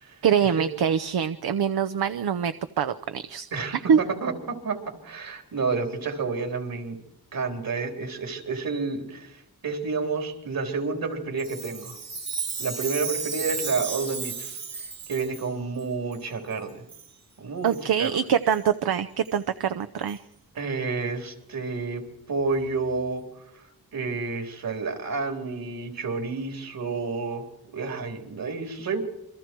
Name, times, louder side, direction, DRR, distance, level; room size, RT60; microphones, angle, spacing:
voice 1, 0.2-3.5 3.9-4.0 17.6-20.2, right 8 dB, 80° right, 11 dB, 0.8 m, -24 dB
voice 2, 4.2-4.8 5.0-7.0 7.3-12.0 12.6-16.8 17.4-18.1 20.6-22.0 22.3-23.2 23.9-27.4 27.7-29.0, right 4 dB, 65° right, 4 dB, 4.0 m, -30 dB
Chime, 11.4-15.5 16.1-16.2 16.9-17.1 17.7-17.8 18.5-18.6 19.3-19.4 20.1-20.2, right 5 dB, 45° right, 2.1 m, -34 dB
28.0 x 23.5 x 4.6 m, 0.80 s
wide cardioid pair, 180°, 38 cm